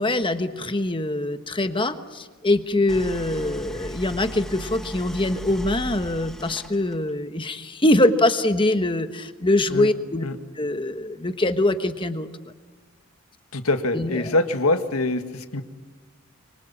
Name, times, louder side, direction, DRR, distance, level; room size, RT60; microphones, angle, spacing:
voice 1, 0.0-10.3 10.5-12.3 13.9-14.3, left 1 dB, 25° left, 9 dB, 1.3 m, -23 dB
Idling, 2.9-7.1, equal, ahead, 1.2 m, -37 dB
voice 2, 13.5-15.6, left 2 dB, 75° left, 8 dB, 1.8 m, -24 dB
25.0 x 24.0 x 7.4 m, 1.4 s
head